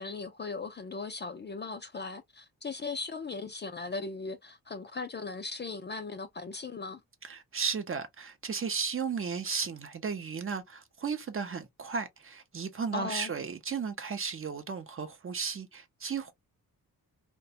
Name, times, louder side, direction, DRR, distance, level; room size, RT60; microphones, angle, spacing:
voice 1, 0.0-7.0 12.9-13.3, left 4 dB, 30° left, 0.4 m, -38 dB
voice 2, 7.2-16.3, right 5 dB, 35° right, 0.5 m, -34 dB
2.4 x 2.2 x 2.7 m
wide cardioid pair, 110°, 38 cm